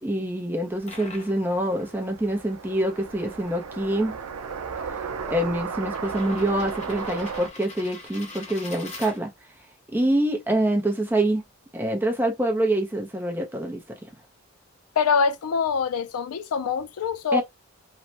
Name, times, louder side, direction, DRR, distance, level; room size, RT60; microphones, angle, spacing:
voice 1, 0.0-4.2 5.2-9.3 9.9-11.4 11.7-14.0 17.3-17.4, right 1 dB, 10° right, 0.5 m, -25 dB
sound 1, 0.6-9.6, left 3 dB, 30° left, 0.7 m, -45 dB
sound 2, 0.7-7.5, right 6 dB, 90° right, 0.5 m, -35 dB
voice 2, 15.0-17.4, left 5 dB, 80° left, 0.4 m, -24 dB
3.1 x 2.1 x 2.7 m
head